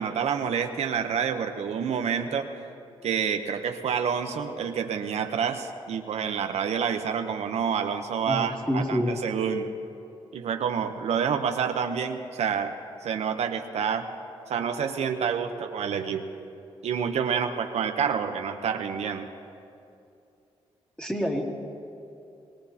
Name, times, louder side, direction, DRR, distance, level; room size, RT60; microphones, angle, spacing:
voice 1, 0.0-2.5 3.0-9.7 10.3-12.7 13.0-14.1 14.5-16.2 16.8-19.3, right 7 dB, 75° right, 6 dB, 0.8 m, -28 dB
voice 2, 8.3-9.1 21.0-21.4, equal, 10° left, -2 dB, 2.5 m, -27 dB
22.0 x 18.5 x 2.8 m, 2.7 s
cardioid pair, 65°, 11 cm